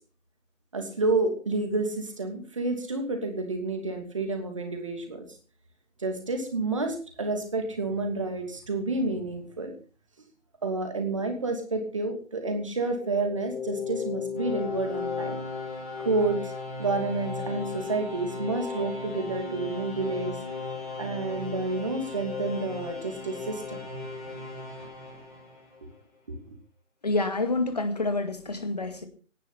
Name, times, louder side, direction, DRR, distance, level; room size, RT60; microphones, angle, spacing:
voice 1, 0.7-5.2 6.0-9.7 10.6-15.3 16.0-16.5 16.8-20.4 21.0-23.8 26.3-26.4, right 3 dB, 25° right, 4 dB, 2.8 m, -29 dB
sound 1, 12.9-25.9, left 4 dB, 10° left, 3.4 m, -35 dB
voice 2, 27.0-29.1, left 2 dB, 30° left, 8 dB, 2.2 m, -28 dB
17.5 x 11.0 x 5.8 m, 0.39 s
figure-of-eight pair, 165°, 40 cm